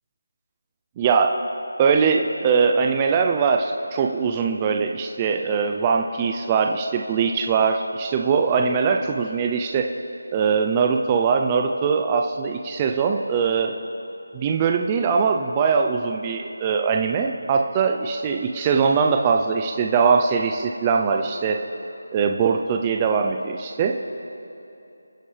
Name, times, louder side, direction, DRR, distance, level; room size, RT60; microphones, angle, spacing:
voice 1, 1.0-1.4 1.8-9.9 10.3-13.7 14.3-21.6 22.1-23.9, right 5 dB, 15° right, 3 dB, 0.5 m, -21 dB
28.0 x 9.9 x 3.3 m, 2.9 s
figure-of-eight pair, 170°, 0 cm